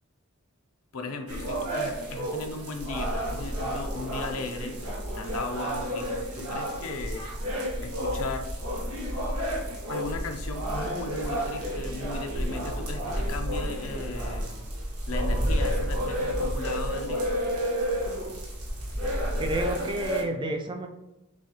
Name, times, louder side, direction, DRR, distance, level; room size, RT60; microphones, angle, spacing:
voice 1, 0.9-7.2 7.8-8.5 9.9-14.7 15.1-17.3, left 3 dB, 75° left, 6 dB, 0.6 m, -37 dB
sound 1, 1.3-20.2, equal, 90° right, 1.1 m, -31 dB
voice 2, 19.4-20.9, right 1 dB, 20° right, 4 dB, 0.4 m, -30 dB
6.1 x 2.4 x 2.8 m, 0.96 s
head